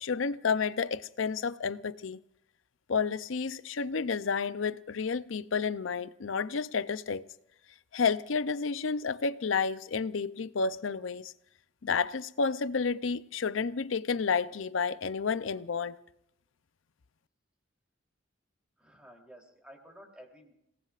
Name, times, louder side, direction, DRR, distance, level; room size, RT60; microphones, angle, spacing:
voice 1, 0.0-2.2 2.9-7.2 7.9-11.3 11.8-16.0, left 5 dB, 80° left, 0.6 m, -30 dB
voice 2, 18.8-20.5, equal, 5° right, 3.3 m, -53 dB
29.5 x 18.5 x 2.5 m
head